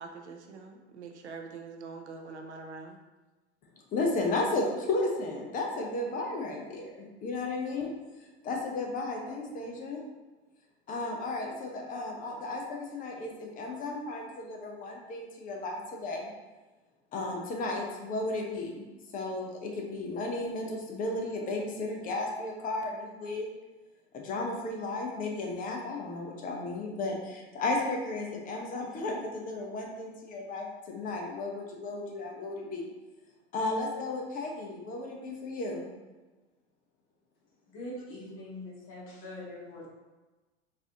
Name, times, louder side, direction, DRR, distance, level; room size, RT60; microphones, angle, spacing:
voice 1, 0.0-3.0, right 4 dB, 80° right, 4 dB, 0.6 m, -44 dB
voice 2, 3.9-7.9 8.5-10.0 10.9-12.6 12.9-16.2 17.1-18.8 19.1-23.5 24.3-27.2 27.5-32.8 33.5-35.9, left 2 dB, 25° left, 1 dB, 0.6 m, -34 dB
voice 3, 37.7-39.9, left 1 dB, 40° left, -4 dB, 1.3 m, -43 dB
4.0 x 2.6 x 2.8 m, 1.2 s
figure-of-eight pair, 85°, 34 cm